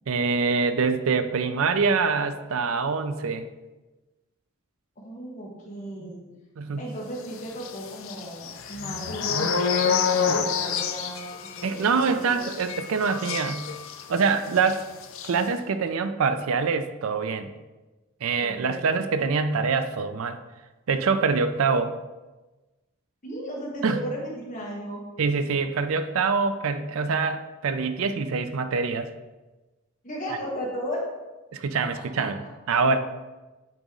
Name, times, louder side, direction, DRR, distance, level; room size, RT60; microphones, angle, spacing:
voice 1, 0.1-3.5 6.6-6.9 11.6-13.7 14.1-14.9 15.2-17.5 18.2-20.4 20.9-21.9 23.8-24.0 25.2-29.1 30.3-30.4 31.5-32.4 32.7-33.0, right 5 dB, 70° right, 10 dB, 0.4 m, -25 dB
voice 2, 5.0-6.3 6.8-9.5 9.8-11.3 11.6-12.4 18.4-18.8 23.2-25.0 30.0-31.0 32.1-32.2, equal, 35° left, -3 dB, 1.3 m, -35 dB
sound 1, 7.6-14.3 14.6-14.8 15.0-15.3, left 6 dB, 65° left, 0.5 m, -28 dB
8.8 x 3.1 x 3.8 m, 1.1 s
head